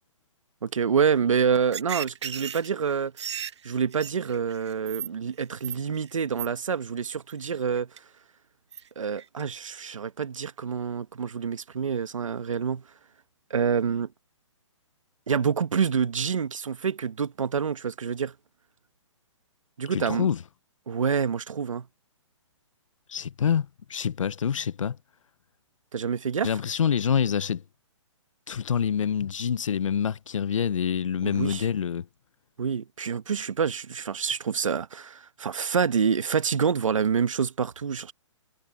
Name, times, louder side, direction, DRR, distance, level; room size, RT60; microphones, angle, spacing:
voice 1, 0.6-3.1 3.6-7.9 9.0-12.8 13.5-14.1 15.3-18.3 19.8-20.3 20.9-21.9 25.9-26.5 31.2-31.6 32.6-38.1, right 6 dB, 85° right, 1.4 m, -27 dB
sound 1, 1.5-5.1 5.4-6.1 6.4-6.5 7.1-7.3 7.8-8.0 8.7-8.8 9.2-9.4, right 8 dB, 60° right, 1.2 m, -35 dB
voice 2, 19.9-20.4 23.1-25.0 26.4-27.6 28.5-32.1, left 8 dB, 80° left, 0.7 m, -26 dB
hypercardioid pair, 165°, 16 cm